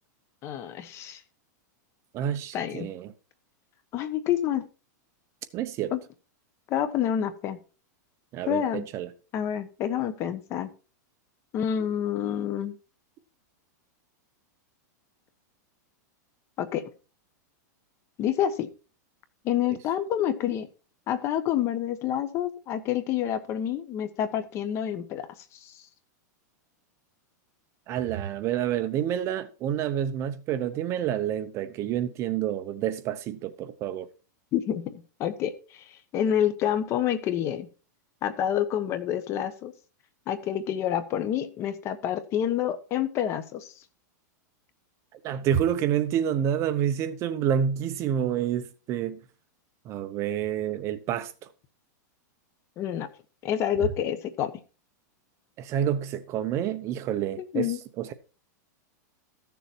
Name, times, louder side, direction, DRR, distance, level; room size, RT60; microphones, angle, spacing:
voice 1, 0.4-1.2 2.5-2.9 3.9-4.6 5.9-6.0 6.7-7.6 8.5-8.9 9.3-10.7 11.5-12.7 16.6-16.8 18.2-18.7 19.4-20.7 21.1-25.3 25.6-25.7 34.5-35.8 36.1-37.7 38.2-39.7 40.3-43.7 52.8-53.1 53.4-54.5 57.4-57.8, left 10 dB, 30° left, 1.1 m, -28 dB
voice 2, 2.1-3.1 5.5-5.9 8.3-9.1 27.9-34.1 45.2-49.2 49.9-51.3 53.8-53.9 55.6-58.1, right 10 dB, 30° right, 0.8 m, -28 dB
14.0 x 7.0 x 4.5 m
supercardioid pair, 160°, 10 cm